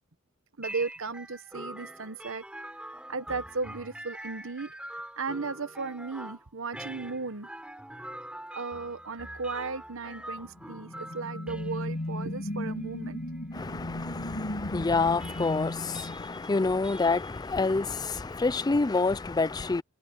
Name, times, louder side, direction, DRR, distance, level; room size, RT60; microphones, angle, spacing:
sound 1, 0.6-19.3, right 1 dB, 5° right, 3.6 m, -45 dB
voice 1, 0.6-2.4 3.1-4.7 5.2-7.5 8.5-13.2, right 4 dB, 70° right, 1.0 m, -35 dB
sound 2, 10.4-17.0, left 1 dB, 55° left, 2.3 m, -36 dB
voice 2, 13.5-19.8, left 3 dB, 20° left, 0.4 m, -28 dB
head